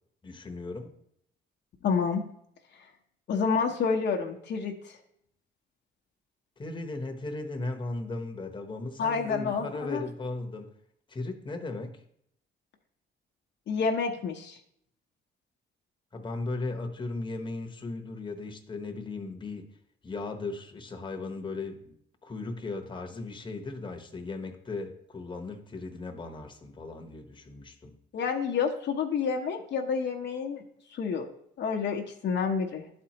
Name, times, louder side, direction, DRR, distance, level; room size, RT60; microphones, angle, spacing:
voice 1, 0.2-0.9 6.6-10.7 11.1-12.0 16.1-19.7 20.0-21.9 22.2-28.0, left 3 dB, 25° left, 4 dB, 0.9 m, -37 dB
voice 2, 1.8-2.2 3.3-5.0 9.0-10.0 13.7-14.6 28.1-30.6 30.9-31.3 31.6-32.8, left 5 dB, 60° left, 3 dB, 0.8 m, -29 dB
11.0 x 4.3 x 2.9 m, 0.72 s
cardioid pair, 90°, 20 cm